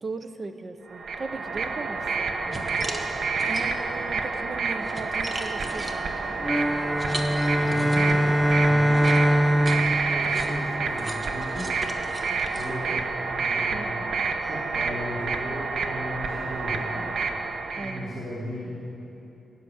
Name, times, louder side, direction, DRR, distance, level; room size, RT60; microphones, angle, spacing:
voice 1, 0.0-2.3 2.5-2.8 3.5-6.3 13.7-13.9 17.8-18.2, right 3 dB, 40° right, 9 dB, 0.8 m, -37 dB
sound 1, 0.9-18.0, right 4 dB, 75° right, 1.1 m, -29 dB
sound 2, 2.0-2.1 2.5-4.0 4.5-8.3 8.9-13.4, right 1 dB, 20° right, 1.2 m, -38 dB
voice 2, 2.4-2.8 7.6-11.6 12.5-17.1 17.7-18.7, equal, 60° right, -9 dB, 3.2 m, -36 dB
sound 3, 6.4-11.1, equal, ahead, 0.3 m, -23 dB
17.5 x 6.7 x 9.3 m, 3.0 s
wide cardioid pair, 135°, 0 cm